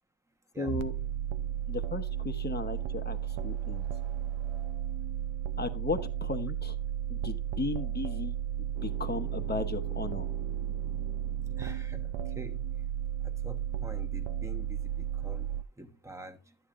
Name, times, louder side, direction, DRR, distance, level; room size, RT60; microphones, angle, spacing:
voice 1, 0.6-0.9 1.7-3.9 5.6-6.8 7.1-8.3 8.8-10.3, left 4 dB, 20° left, 0.9 m, -35 dB
sound 1, 0.7-15.6, right 10 dB, 85° right, 0.7 m, -34 dB
sound 2, 8.7-12.7, right 10 dB, 45° right, 0.7 m, -48 dB
voice 2, 11.6-12.7 13.2-16.6, right 1 dB, 5° right, 1.1 m, -46 dB
12.0 x 8.6 x 2.5 m
wide cardioid pair, 130°, 47 cm